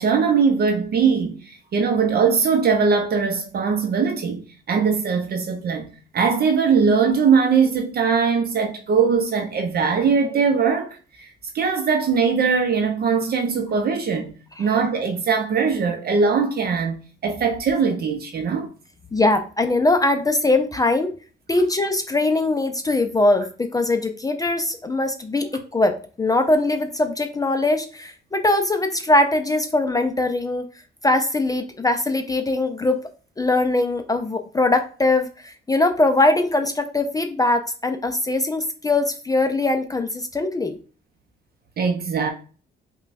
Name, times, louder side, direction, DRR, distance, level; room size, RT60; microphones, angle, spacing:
voice 1, 0.0-14.3 14.6-18.7 41.8-42.3, right 5 dB, 50° right, 0.6 m, -21 dB
voice 2, 19.1-21.1 21.5-30.7 31.0-33.1 33.4-40.8, left 2 dB, 20° left, 0.4 m, -21 dB
5.2 x 2.3 x 2.5 m
cardioid pair, 90°, 20 cm